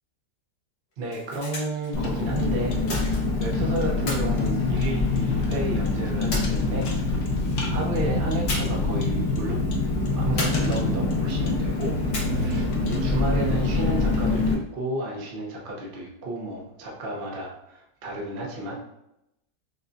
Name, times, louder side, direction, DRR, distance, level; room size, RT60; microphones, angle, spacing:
sound 1, 0.9-1.9 2.9-3.5 4.1-5.3 6.3-7.1 8.5-8.9 9.2-9.3 10.4-11.1 12.1-12.7, left 1 dB, 75° left, 2.1 m, -34 dB
voice 1, 1.0-7.3 7.6-9.6 10.2-11.9 12.2-18.7, right 1 dB, 45° right, -2 dB, 0.7 m, -32 dB
Car, 1.9-14.5, left 3 dB, 60° left, 0.8 m, -25 dB
6.3 x 2.2 x 2.6 m, 0.84 s
omnidirectional pair, 1.9 m